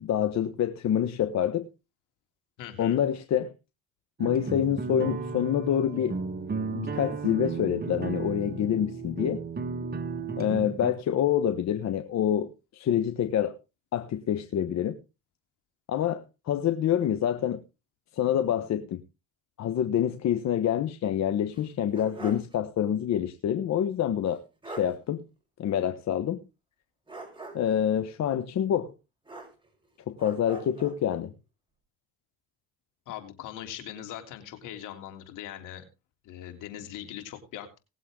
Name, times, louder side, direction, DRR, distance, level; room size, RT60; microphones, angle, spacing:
voice 1, 0.0-1.7 2.8-3.5 4.2-6.2 6.7-9.4 10.4-13.5 13.9-15.0 15.9-17.6 18.1-19.0 19.6-25.2 25.6-26.4 27.5-28.9 30.1-31.3, left 10 dB, 60° left, 1.2 m, -27 dB
voice 2, 2.6-3.0 33.1-35.8 36.2-37.8, left 11 dB, 75° left, 3.2 m, -41 dB
sound 1, 4.2-10.9, right 4 dB, 30° right, 1.8 m, -34 dB
sound 2, 21.5-22.6 22.9-23.0 24.3-24.4 24.6-25.0 27.1-27.8 29.2-29.9 30.2-31.0, right 2 dB, 15° right, 5.4 m, -43 dB
19.0 x 7.8 x 3.7 m
supercardioid pair, 75°, 31 cm